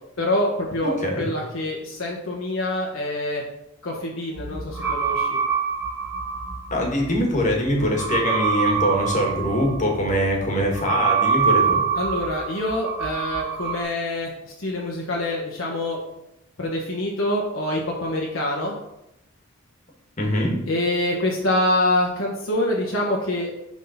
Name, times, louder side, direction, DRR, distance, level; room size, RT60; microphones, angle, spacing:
voice 1, 0.2-3.4 3.8-5.4 11.9-16.0 16.6-18.7 20.7-23.5, left 1 dB, 75° left, -2 dB, 1.1 m, -25 dB
voice 2, 0.8-1.3 6.7-11.8 20.2-20.6, equal, 35° left, 0 dB, 1.5 m, -23 dB
sound 1, 4.4-13.8, right 6 dB, 10° right, 0.9 m, -25 dB
6.3 x 3.7 x 5.6 m, 0.85 s
head